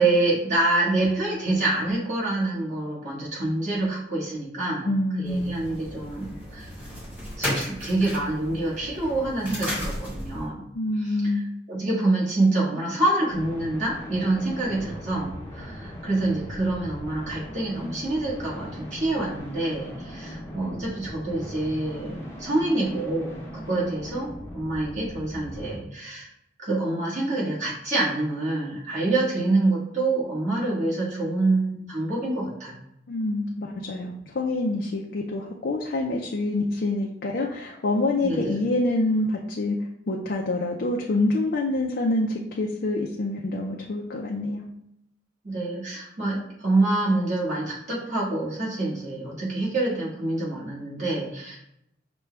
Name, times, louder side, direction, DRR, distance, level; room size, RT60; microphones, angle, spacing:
voice 1, 0.0-4.9 5.2-6.7 7.4-10.6 11.7-26.3 26.6-32.8 38.2-38.5 45.4-51.6, right 2 dB, 40° right, -6 dB, 1.7 m, -26 dB
voice 2, 4.8-5.7 10.7-11.5 33.1-39.8 40.1-44.6, left 2 dB, 55° left, -1 dB, 0.5 m, -26 dB
sound 1, 5.2-10.5, equal, 10° right, 1.5 m, -34 dB
sound 2, 13.3-25.8, equal, 15° left, 0.8 m, -39 dB
6.0 x 2.3 x 3.3 m, 0.77 s
head